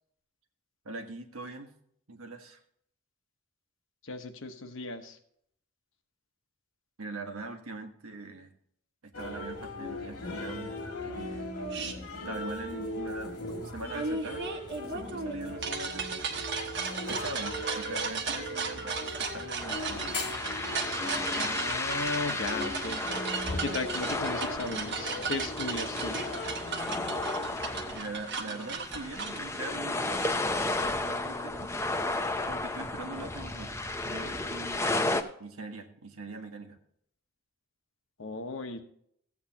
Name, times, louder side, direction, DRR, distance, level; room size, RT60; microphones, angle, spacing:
voice 1, 0.8-1.7 2.1-2.6 7.0-8.5 9.0-11.5 12.1-13.4 13.7-14.5 14.8-16.4 17.1-20.1 27.9-30.3 30.8-31.7 32.4-36.8, right 3 dB, 80° right, 5 dB, 1.4 m, -42 dB
voice 2, 4.0-5.2 21.3-23.1 23.5-26.3 27.0-27.1 38.2-38.8, left 3 dB, 60° left, 7 dB, 1.1 m, -36 dB
sound 1, 9.1-28.0, left 1 dB, 85° left, 2.0 m, -39 dB
sound 2, 11.7-11.9 13.9-29.4, right 5 dB, 55° right, 1.2 m, -36 dB
sound 3, 19.6-35.2, left 2 dB, 10° left, 0.5 m, -33 dB
15.0 x 8.5 x 2.9 m, 0.69 s
head